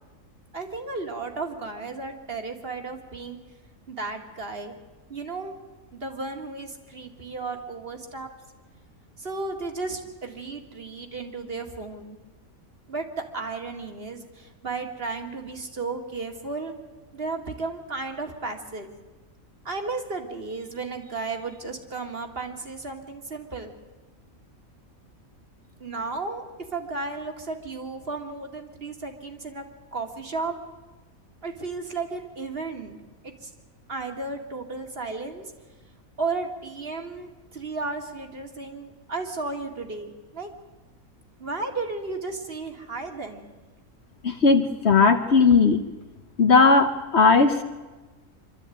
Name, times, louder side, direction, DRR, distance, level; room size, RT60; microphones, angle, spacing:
voice 1, 0.5-3.4 3.9-4.8 5.1-5.5 5.9-8.3 9.2-12.2 12.9-16.7 17.1-18.9 19.6-23.7 25.8-26.5 26.7-29.6 29.9-30.5 31.4-33.0 33.2-33.5 33.9-35.4 36.2-40.5 41.4-43.5, right 3 dB, 40° right, 4 dB, 2.3 m, -34 dB
voice 2, 44.2-45.8 46.4-47.6, left 4 dB, 55° left, 6 dB, 1.1 m, -17 dB
25.0 x 13.0 x 9.2 m, 1.2 s
omnidirectional pair, 1.5 m